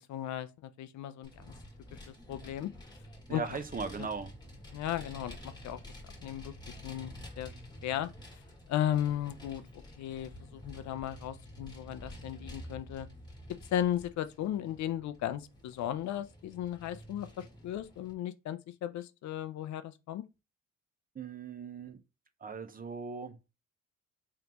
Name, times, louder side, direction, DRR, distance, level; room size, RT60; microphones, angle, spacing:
voice 1, 0.0-1.5 1.9-2.7 3.3-3.4 4.0-4.1 4.7-5.8 6.2-6.5 6.8-7.5 7.8-8.1 8.7-9.6 10.0-13.1 13.7-20.2, left 11 dB, 65° left, 0.5 m, -36 dB
Vehicle, 1.2-18.1, left 1 dB, 15° left, 1.4 m, -50 dB
voice 2, 3.3-4.3 21.2-22.0 22.4-23.4, right 5 dB, 30° right, 0.7 m, -38 dB
3.7 x 3.5 x 2.9 m
cardioid pair, 90°, 30 cm